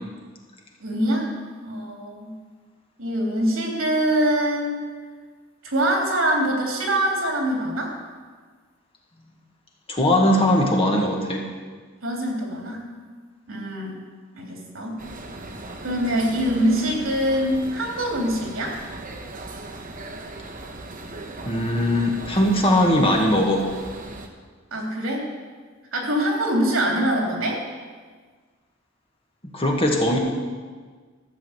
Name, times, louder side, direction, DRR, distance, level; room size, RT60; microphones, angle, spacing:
voice 1, 0.8-1.3 1.6-2.3 3.0-4.8 5.6-7.9 12.0-12.9 13.5-13.9 14.4-15.0 15.8-18.8 24.7-25.3 25.9-27.6, right 1 dB, 80° right, 0 dB, 3.2 m, -24 dB
voice 2, 9.9-11.4 21.5-23.7 29.4-30.2, left 1 dB, 25° left, 0 dB, 1.7 m, -20 dB
sound 1, 15.0-24.3, right 2 dB, 40° right, 1.2 m, -38 dB
13.5 x 6.8 x 8.0 m, 1.5 s
head